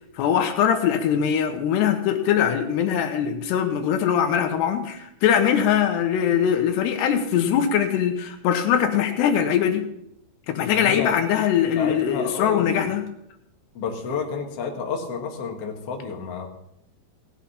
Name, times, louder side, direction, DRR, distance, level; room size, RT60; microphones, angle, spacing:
voice 1, 0.2-9.9 10.5-13.0, left 9 dB, 80° left, 7 dB, 3.1 m, -22 dB
voice 2, 10.6-11.2 11.7-12.8 13.7-16.5, left 5 dB, 50° left, 1 dB, 2.0 m, -30 dB
17.5 x 8.2 x 5.7 m, 0.79 s
omnidirectional pair, 4.9 m